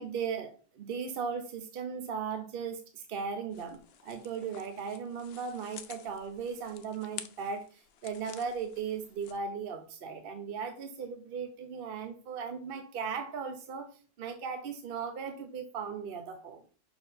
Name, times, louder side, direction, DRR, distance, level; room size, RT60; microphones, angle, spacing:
voice 1, 0.0-13.9 14.2-16.6, right 6 dB, 55° right, 6 dB, 0.7 m, -37 dB
sound 1, 3.5-9.4, left 9 dB, 70° left, 0.6 m, -50 dB
5.3 x 4.5 x 3.9 m, 0.40 s
omnidirectional pair, 1.5 m